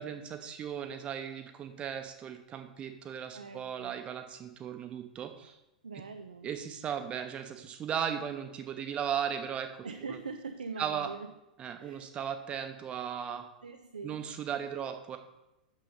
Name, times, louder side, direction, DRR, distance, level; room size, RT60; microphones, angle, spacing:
voice 1, 0.0-5.5 6.4-10.2 10.8-11.1 11.6-13.4 14.0-15.2, right 8 dB, 25° right, 7 dB, 0.9 m, -37 dB
voice 2, 3.3-4.0 5.8-6.5 9.8-11.3 11.8-12.1 13.6-14.3, right 4 dB, 75° right, 7 dB, 0.5 m, -43 dB
6.7 x 6.2 x 5.4 m, 0.90 s
figure-of-eight pair, 95°, 4 cm